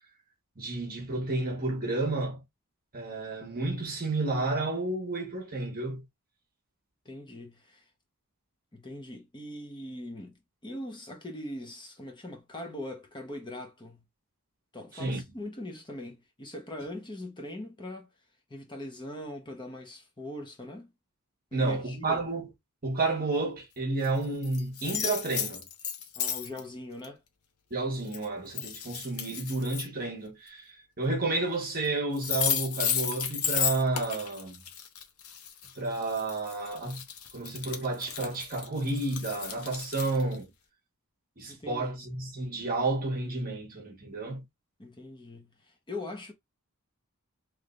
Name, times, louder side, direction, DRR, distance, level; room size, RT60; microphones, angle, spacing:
voice 1, 0.6-2.4 2.9-6.0 14.9-15.2 21.5-22.5 22.8-25.6 27.7-34.6 35.8-37.0 37.3-40.5 41.4-44.4, right 2 dB, 40° right, 1.2 m, -31 dB
voice 2, 7.0-7.9 8.7-14.0 14.7-18.1 18.5-20.9 21.5-22.2 26.1-27.2 41.5-42.0 44.8-46.3, left 1 dB, 20° left, 0.9 m, -41 dB
sound 1, 24.0-24.1 24.4-26.6 27.0-27.1 28.1-28.2 28.5-29.9 31.8-31.9 32.2-40.4, left 8 dB, 70° left, 0.8 m, -33 dB
3.5 x 3.2 x 2.5 m
head